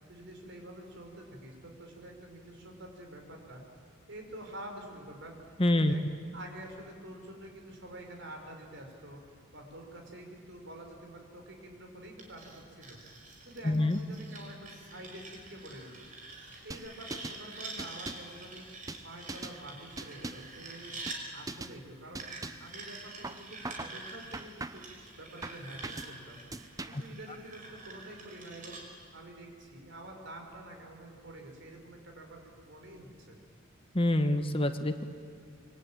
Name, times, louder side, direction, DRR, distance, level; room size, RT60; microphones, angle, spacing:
voice 1, 0.1-3.6 4.1-6.0 6.3-13.0 13.4-16.1 16.6-18.7 19.0-20.9 21.3-22.3 22.6-24.9 25.1-26.4 26.9-28.8 29.1-33.4, right 1 dB, 55° right, 3 dB, 5.5 m, -47 dB
voice 2, 5.6-5.9 13.6-14.0 26.9-27.0 33.9-35.0, left 1 dB, 25° left, 8 dB, 1.2 m, -26 dB
sound 1, 12.2-21.2 22.2-28.8, right 3 dB, 40° right, 5.3 m, -47 dB
sound 2, 16.7-17.4 17.8-18.3 18.9-19.6 20.0-20.5 21.1-21.2 21.5-21.8 22.1-22.7 23.2-24.0 24.3-24.9 25.4-26.1 26.5-27.1, right 2 dB, 15° right, 0.7 m, -41 dB
26.5 x 24.5 x 9.1 m, 2.3 s
head